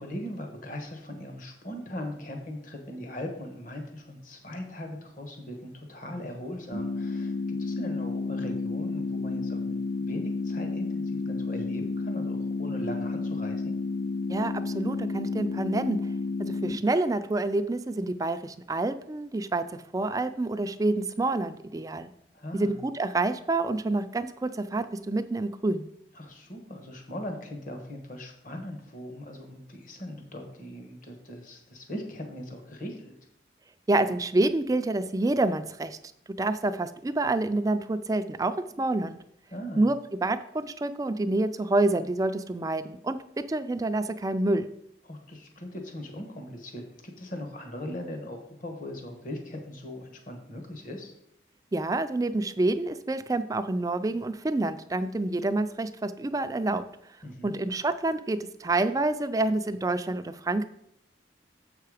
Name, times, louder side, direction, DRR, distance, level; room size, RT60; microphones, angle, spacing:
voice 1, 0.0-7.3 7.6-13.7 22.3-22.8 26.1-33.1 39.5-39.8 45.0-51.1 57.2-57.6, left 1 dB, 50° left, 4 dB, 1.3 m, -39 dB
sound 1, 6.7-16.7, left 3 dB, 65° left, 1.6 m, -31 dB
voice 2, 14.3-16.0 16.4-19.7 19.9-22.1 22.5-25.9 33.9-36.0 36.4-39.2 39.8-40.0 40.2-44.7 51.7-56.8 57.4-60.6, right 2 dB, 20° right, 11 dB, 0.4 m, -27 dB
7.5 x 5.7 x 4.9 m, 0.75 s
head